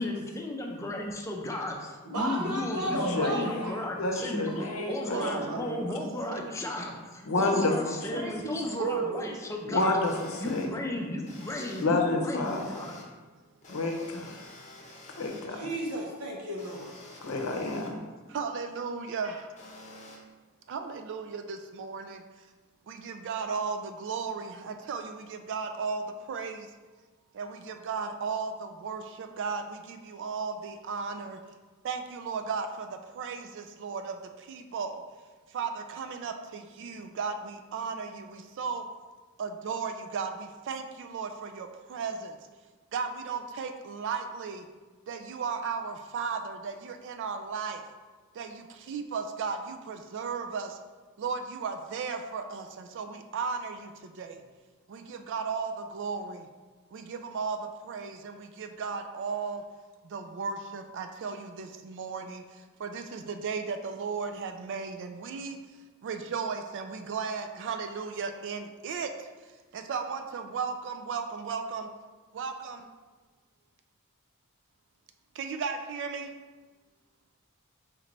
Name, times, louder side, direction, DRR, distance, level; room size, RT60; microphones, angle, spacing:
voice 1, 0.0-4.5 4.9-10.0 10.4-13.0, left 1 dB, 15° left, 0 dB, 0.5 m, -34 dB
voice 2, 2.0-3.7 4.5-5.4 8.1-9.0 15.5-16.9 19.2-19.3, right 1 dB, 75° right, -1 dB, 1.0 m, -34 dB
voice 3, 2.8-5.8 7.2-8.3 9.7-10.7 11.8-12.8 13.7-14.5 15.2-15.6 17.2-18.0, left 2 dB, 70° left, 2 dB, 0.7 m, -30 dB
voice 4, 5.1-6.0 6.3-6.5 8.8-9.6 18.3-19.5 20.7-22.2 22.9-26.7 27.3-31.4 31.8-35.0 35.5-38.8 39.4-42.4 42.9-44.7 45.1-47.8 48.3-50.8 51.2-54.4 54.9-56.5 56.9-59.6 60.0-65.6 66.0-69.3 69.7-71.9 72.3-72.9 75.3-76.3, right 5 dB, 55° right, 6 dB, 0.3 m, -35 dB
sound 1, 10.1-10.7 11.2-11.8 12.4-13.0 13.6-15.5 16.6-17.9 19.6-20.2, left 2 dB, 30° left, 0.8 m, -49 dB
4.3 x 3.2 x 3.8 m, 1.3 s
head